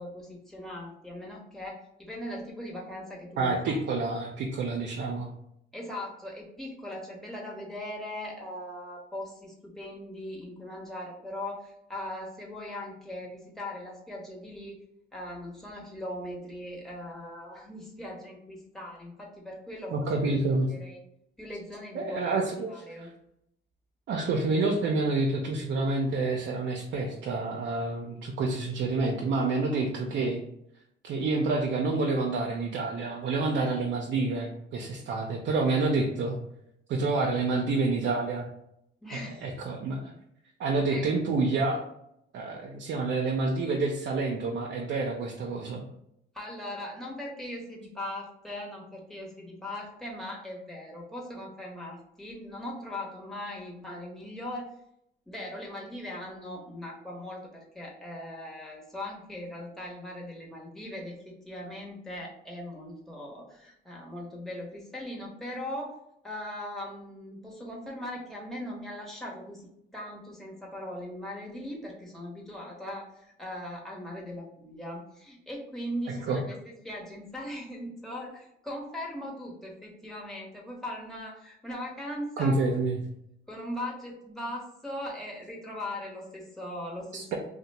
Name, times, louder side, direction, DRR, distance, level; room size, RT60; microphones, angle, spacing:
voice 1, 0.0-3.8 5.7-14.8 15.1-20.3 20.7-21.0 21.4-22.2 22.7-23.1 39.0-39.5 40.9-41.0 46.3-54.7 55.3-66.0 66.2-76.6 76.8-82.7 83.5-87.4, left 1 dB, ahead, -3 dB, 1.0 m, -39 dB
voice 2, 3.4-5.3 19.9-20.7 21.9-23.1 24.1-30.4 31.0-36.4 36.9-38.5 39.4-40.1 40.6-41.8 42.3-45.8 76.3-76.4 82.4-83.0 87.1-87.4, right 3 dB, 70° right, 0 dB, 0.5 m, -28 dB
2.8 x 2.1 x 4.1 m, 0.78 s
cardioid pair, 90°, 20 cm